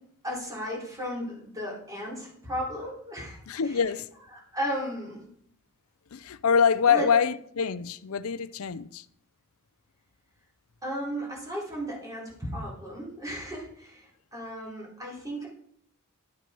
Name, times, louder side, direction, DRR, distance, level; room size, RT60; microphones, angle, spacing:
voice 1, 0.2-3.8 4.3-5.3 6.9-7.1 10.8-15.5, equal, 15° right, 4.2 m, -35 dB
voice 2, 3.5-4.1 6.1-9.0, left 6 dB, 75° left, 0.5 m, -25 dB
12.0 x 9.2 x 4.5 m
head